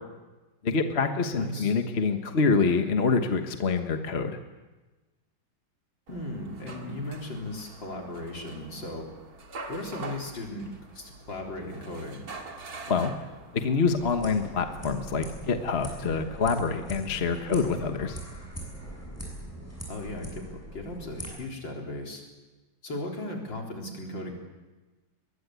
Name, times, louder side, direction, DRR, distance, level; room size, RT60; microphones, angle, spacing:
voice 1, 0.6-4.4 12.9-13.1 13.5-18.2, left 4 dB, 35° left, 6 dB, 1.3 m, -26 dB
voice 2, 1.3-1.7 6.1-9.1 9.7-12.3 19.9-22.2 22.8-24.3, left 1 dB, 60° left, 1 dB, 4.5 m, -37 dB
sound 1, 6.1-15.9, right 3 dB, 45° right, 2.4 m, -45 dB
sound 2, 13.9-21.3, right 1 dB, 5° left, 7.0 m, -41 dB
22.5 x 21.0 x 8.3 m, 1.2 s
omnidirectional pair, 2.3 m